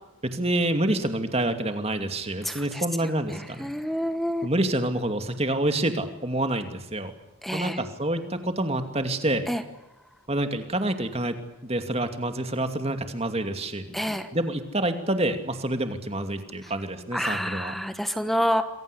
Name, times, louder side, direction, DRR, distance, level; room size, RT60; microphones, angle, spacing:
voice 1, 0.2-3.7 4.4-7.1 7.5-9.5 10.3-11.3 11.6-17.7, right 1 dB, 30° right, 7 dB, 2.5 m, -27 dB
voice 2, 2.4-2.8 3.6-4.5 7.4-7.8 9.5-9.6 13.9-14.3 17.1-18.6, equal, ahead, 9 dB, 1.2 m, -27 dB
28.0 x 22.0 x 8.4 m, 0.91 s
head